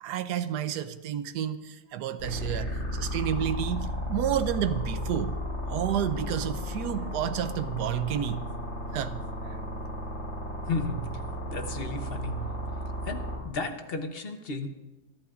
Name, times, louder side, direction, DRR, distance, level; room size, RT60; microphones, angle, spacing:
voice 1, 0.0-5.4 5.7-8.4 8.9-9.9, right 10 dB, 90° right, 12 dB, 1.2 m, -31 dB
sound 1, 2.2-13.4, equal, 85° left, 3.9 m, -34 dB
voice 2, 10.7-11.0 11.5-12.4 13.0-14.7, left 3 dB, 45° left, 6 dB, 1.0 m, -33 dB
26.5 x 11.5 x 2.5 m, 1.1 s
omnidirectional pair, 1.7 m